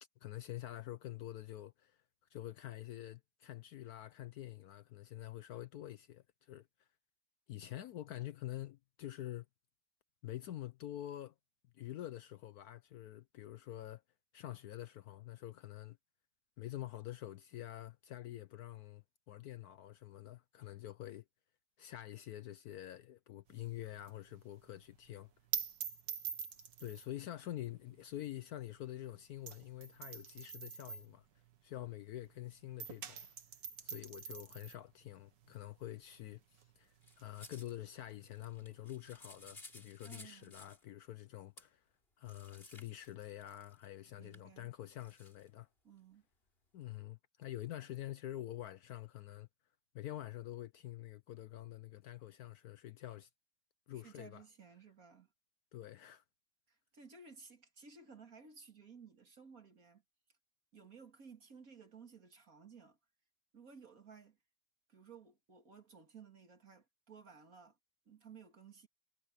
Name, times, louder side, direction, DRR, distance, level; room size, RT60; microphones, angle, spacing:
voice 1, 0.2-2.0 2.3-6.9 7.5-9.5 10.2-11.3 11.7-14.0 14.3-16.0 16.6-21.2 21.8-25.3 26.8-31.2 31.6-33.3 33.8-41.8 42.2-45.7 46.7-49.5 49.9-53.3 53.9-54.4 55.7-56.2, left 13 dB, 70° left, 1.0 m, -47 dB
sound 1, 23.5-32.4 32.6-39.9, right 8 dB, 75° right, 2.0 m, -46 dB
sound 2, 37.0-37.8 38.3-40.8 41.6-41.7 42.2-43.9 44.3-44.4 45.0-45.5, left 1 dB, 30° left, 5.1 m, -57 dB
voice 2, 40.0-40.5 44.2-44.7 45.8-46.2 53.9-55.3 56.9-60.0 60.7-63.0 63.5-64.4 64.9-67.8 68.1-68.9, right 5 dB, 50° right, 2.7 m, -57 dB
omnidirectional pair, 1.9 m